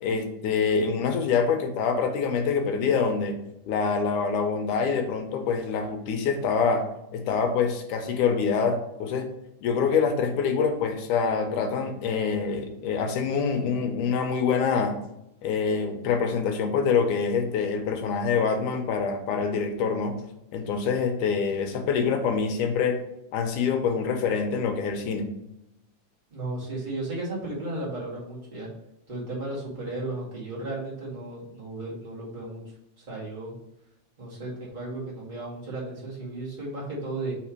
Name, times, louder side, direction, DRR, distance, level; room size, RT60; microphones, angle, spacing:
voice 1, 0.0-3.4 3.7-6.9 7.1-9.3 9.6-15.0 15.4-20.2 20.5-23.0 23.3-25.3, left 5 dB, 80° left, 5 dB, 2.3 m, -25 dB
voice 2, 26.3-28.7 29.1-33.5 34.2-37.3, right 2 dB, 15° right, -6 dB, 1.9 m, -34 dB
5.0 x 4.2 x 5.9 m, 0.85 s
omnidirectional pair, 3.6 m